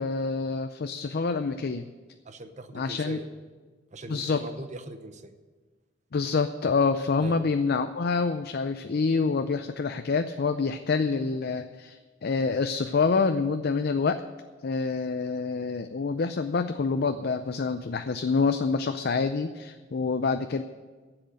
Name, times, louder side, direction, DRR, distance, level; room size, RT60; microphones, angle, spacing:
voice 1, 0.0-1.9 2.7-3.2 4.1-4.4 6.1-14.2 14.6-20.6, left 4 dB, 55° left, 8 dB, 0.5 m, -27 dB
voice 2, 2.2-3.3 3.9-5.3 7.2-7.4, right 1 dB, 40° right, 9 dB, 0.8 m, -41 dB
10.5 x 7.8 x 9.1 m, 1.4 s
head